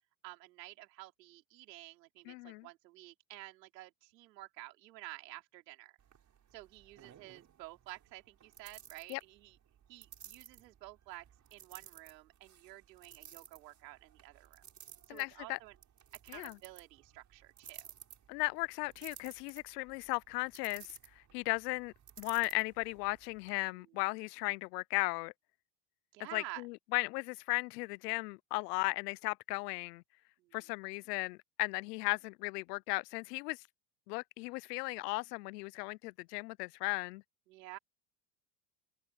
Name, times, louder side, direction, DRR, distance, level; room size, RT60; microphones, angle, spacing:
voice 1, 0.2-6.0 6.5-9.6 9.9-14.7 15.1-15.8 16.2-17.9 23.8-24.0 26.1-26.6 30.4-30.6 37.5-37.8, right 18 dB, 85° right, 4.4 m, -51 dB
voice 2, 2.3-2.7 9.1-9.2 15.1-15.6 16.3-16.6 18.3-21.0 21.3-25.3 26.3-30.0 30.5-33.6 34.1-37.2, left 24 dB, 75° left, 0.7 m, -36 dB
sound 1, 6.0-23.5, right 9 dB, 35° right, 6.5 m, -57 dB
supercardioid pair, 100°, 48 cm